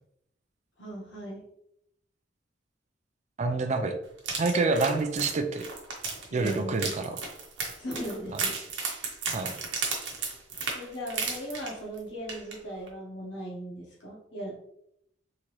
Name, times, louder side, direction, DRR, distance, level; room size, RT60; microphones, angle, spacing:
voice 1, 0.8-1.5 6.3-6.9 7.8-8.5 10.7-14.6, equal, 70° left, -4 dB, 1.2 m, -38 dB
voice 2, 3.4-3.9 4.4-5.6 6.3-7.2 9.3-9.5, right 3 dB, 40° right, 6 dB, 0.4 m, -27 dB
sound 1, 4.2-12.0 12.3-12.5 12.9-13.0, right 4 dB, 70° right, 1.0 m, -34 dB
3.7 x 2.9 x 3.0 m, 0.75 s
head